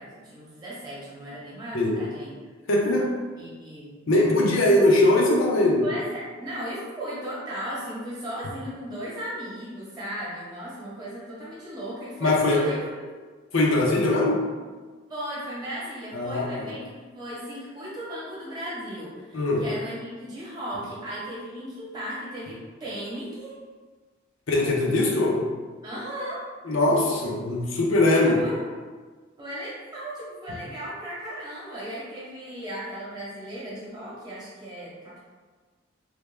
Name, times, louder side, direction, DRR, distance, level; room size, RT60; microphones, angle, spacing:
voice 1, 0.0-2.3 3.4-4.0 5.8-13.1 15.1-23.5 25.8-26.4 28.2-28.6 29.4-35.2, right 1 dB, 20° right, -8 dB, 0.9 m, -36 dB
voice 2, 2.7-3.1 4.1-5.8 12.2-12.6 13.5-14.4 16.1-16.7 19.3-19.6 24.5-25.4 26.6-28.4, left 2 dB, 80° left, -2 dB, 0.6 m, -21 dB
3.3 x 2.1 x 3.2 m, 1.4 s
head